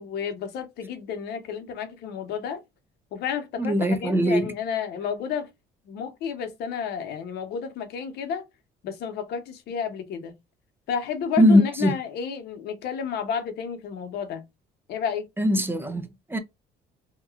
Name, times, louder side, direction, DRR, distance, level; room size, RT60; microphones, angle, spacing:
voice 1, 0.0-2.6 3.1-5.5 5.9-8.4 8.8-10.3 10.9-14.4 14.9-15.3, left 7 dB, 75° left, 0.9 m, -31 dB
voice 2, 3.6-4.5 11.4-12.0 15.4-16.4, equal, 15° right, 0.5 m, -21 dB
2.9 x 2.3 x 2.4 m
cardioid pair, 110°, 17 cm